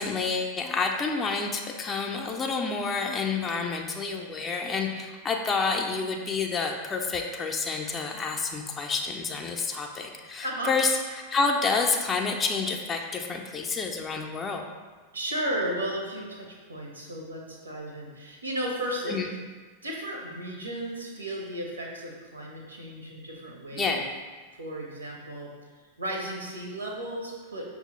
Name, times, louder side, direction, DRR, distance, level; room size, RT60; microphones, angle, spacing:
voice 1, 0.0-10.9 11.3-14.6 19.1-19.3 23.8-24.0, left 4 dB, 20° left, 2 dB, 0.4 m, -29 dB
voice 2, 15.1-19.2 19.8-24.0 24.6-25.5 26.0-27.6, right 1 dB, 75° right, -1 dB, 0.7 m, -34 dB
5.7 x 2.0 x 2.9 m, 1.4 s
figure-of-eight pair, 90°, 0 cm